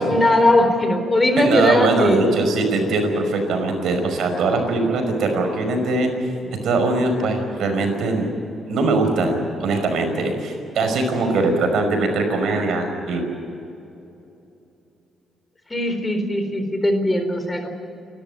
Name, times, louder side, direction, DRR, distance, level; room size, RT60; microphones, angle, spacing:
voice 1, 0.0-2.2 15.7-17.7, left 1 dB, 20° left, 6 dB, 4.1 m, -19 dB
voice 2, 1.4-6.3 6.6-8.3 8.7-13.2, right 3 dB, 70° right, 5 dB, 5.3 m, -21 dB
29.5 x 13.5 x 9.5 m, 2.8 s
cardioid pair, 90°, 0 cm